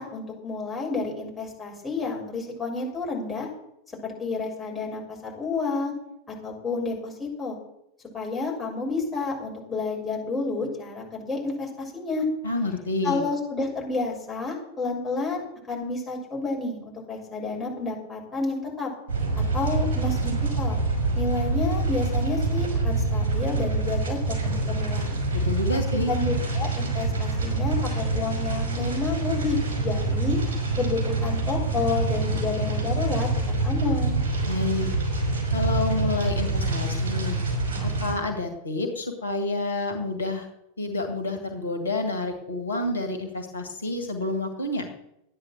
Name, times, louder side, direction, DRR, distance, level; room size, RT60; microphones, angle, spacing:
voice 1, 0.0-3.5 4.0-5.9 6.3-7.6 8.1-12.3 13.0-18.9 19.5-20.8 21.1-25.1 25.7-25.8 26.1-30.4 30.8-33.3 33.6-34.2, left 3 dB, 10° left, -3 dB, 6.8 m, -30 dB
voice 2, 12.4-13.2 25.3-26.1 34.5-34.9 35.5-37.4 37.8-40.5 40.8-44.9, left 2 dB, 70° left, 6 dB, 2.0 m, -29 dB
sound 1, 19.1-38.1, right 2 dB, 60° right, 5.4 m, -26 dB
13.5 x 10.0 x 7.8 m, 0.83 s
figure-of-eight pair, 90°, 0 cm